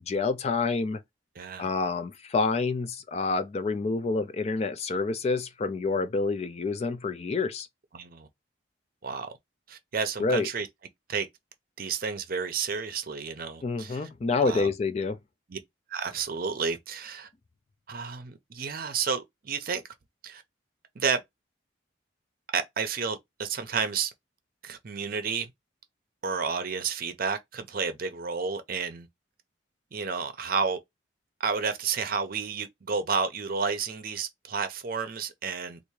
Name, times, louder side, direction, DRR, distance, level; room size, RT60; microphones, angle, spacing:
voice 1, 0.1-1.0 1.6-7.7 10.2-10.5 13.6-15.2, left 3 dB, 35° left, 0.4 m, -28 dB
voice 2, 1.4-1.7 7.9-8.3 9.0-9.3 9.7-10.7 11.1-11.3 11.8-14.1 14.4-14.7 15.5-15.6 15.9-17.3 17.9-19.8 20.2-20.4 21.0-21.2 22.5-24.1 24.6-25.5 26.2-29.1 29.9-30.8 31.4-35.8, right 5 dB, 50° right, 0.6 m, -31 dB
3.4 x 2.5 x 3.1 m
head